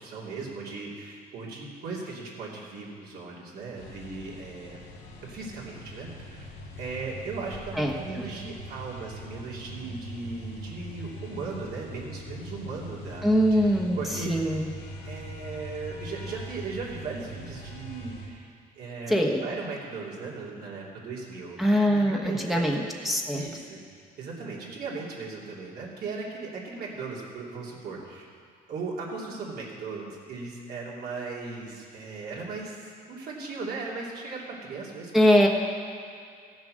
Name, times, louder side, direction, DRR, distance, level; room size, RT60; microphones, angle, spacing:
voice 1, 0.0-4.9 5.2-6.5 6.8-14.5 15.0-18.5 18.8-21.6 21.8-22.7 23.3-23.8 24.2-28.3 28.7-35.3, right 4 dB, 65° right, -4 dB, 3.0 m, -37 dB
sound 1, 3.8-18.3, equal, 85° left, 2.0 m, -42 dB
voice 2, 13.2-14.7 19.1-19.4 21.6-23.4 35.1-35.5, equal, ahead, -1 dB, 1.2 m, -23 dB
15.0 x 7.3 x 6.5 m, 2.3 s
cardioid pair, 110°, 17 cm